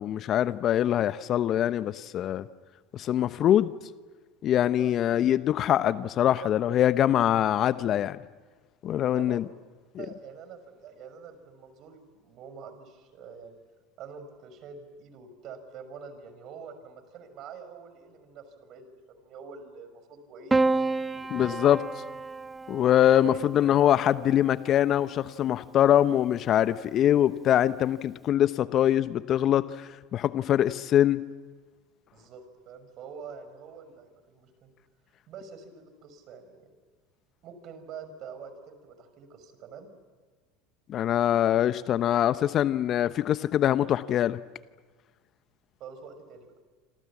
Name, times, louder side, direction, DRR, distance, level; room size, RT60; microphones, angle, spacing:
voice 1, 0.0-2.4 2.9-3.7 4.4-8.2 8.8-9.4 9.9-10.0 21.3-21.8 22.7-31.2 40.9-44.4, left 11 dB, 45° left, 14 dB, 1.0 m, -23 dB
voice 2, 9.1-9.5 10.0-13.6 14.0-20.5 21.1-21.6 23.2-23.4 32.1-34.7 35.3-36.7 37.4-39.9 45.8-46.5, right 6 dB, 50° right, 9 dB, 5.8 m, -46 dB
Piano, 20.5-25.0 26.2-26.9, right 3 dB, 15° right, 0.9 m, -31 dB
27.5 x 26.5 x 7.4 m, 1.4 s
hypercardioid pair, 80°, 0 cm